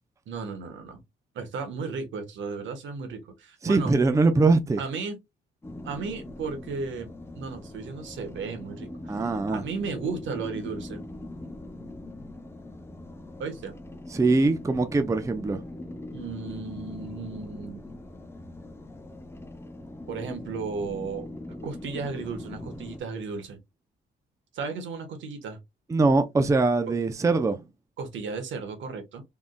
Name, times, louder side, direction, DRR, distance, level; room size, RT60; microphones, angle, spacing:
voice 1, 0.3-1.0 1.3-3.9 4.8-5.2 5.8-7.1 7.3-8.9 9.2-11.0 13.4-13.7 16.1-17.8 20.1-21.3 21.6-23.6 24.5-25.6 28.0-29.2, right 4 dB, 70° right, 1.2 m, -34 dB
voice 2, 3.6-4.8 9.1-9.6 14.1-15.6 25.9-27.6, right 3 dB, 15° right, 0.5 m, -22 dB
sound 1, 5.6-23.0, left 1 dB, 10° left, 0.8 m, -41 dB
3.7 x 3.6 x 2.2 m
cardioid pair, 90°, 20 cm